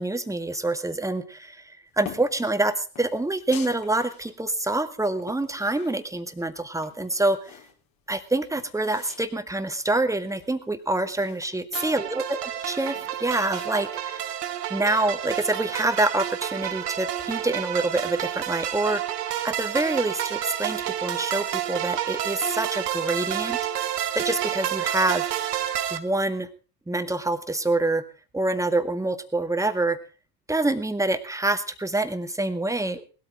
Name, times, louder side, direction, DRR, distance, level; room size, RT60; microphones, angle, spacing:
voice 1, 0.0-7.5 8.1-12.4 12.6-14.3 14.7-19.0 19.4-23.6 24.1-25.4 25.9-26.5 26.9-28.0 28.3-30.0 30.5-33.0, right 2 dB, 5° right, 9 dB, 1.9 m, -26 dB
sound 1, 2.1-2.4 3.0-4.4 4.8-6.4 6.7-7.8 8.1-8.2 8.4-9.3 9.6-9.7 10.0-12.0 12.4-13.7, left 8 dB, 45° left, 3.6 m, -45 dB
sound 2, 11.7-26.0, right 11 dB, 70° right, 1.7 m, -30 dB
20.0 x 13.0 x 3.7 m, 0.36 s
figure-of-eight pair, 70°, 50 cm